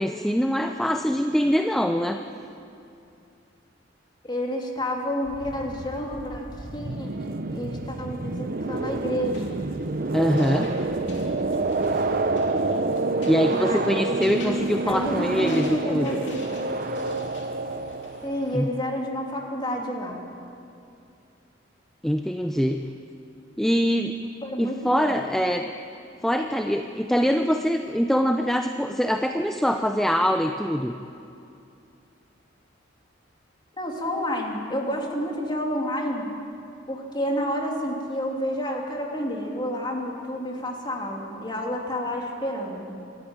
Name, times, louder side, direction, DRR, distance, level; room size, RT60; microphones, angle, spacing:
voice 1, 0.0-2.2 10.1-10.7 13.3-16.1 18.5-18.7 22.0-22.8 23.6-24.2 24.6-25.7 26.2-30.9, equal, ahead, 5 dB, 0.5 m, -23 dB
voice 2, 4.2-9.7 13.6-14.0 14.9-16.6 18.2-20.2 24.4-25.2 33.8-36.3 36.9-42.9, equal, 25° left, 0 dB, 2.8 m, -30 dB
sound 1, 5.3-18.7, right 3 dB, 50° right, 0.8 m, -28 dB
sound 2, 8.7-18.6, left 2 dB, 65° left, 3.3 m, -45 dB
25.0 x 13.5 x 8.9 m, 2.6 s
head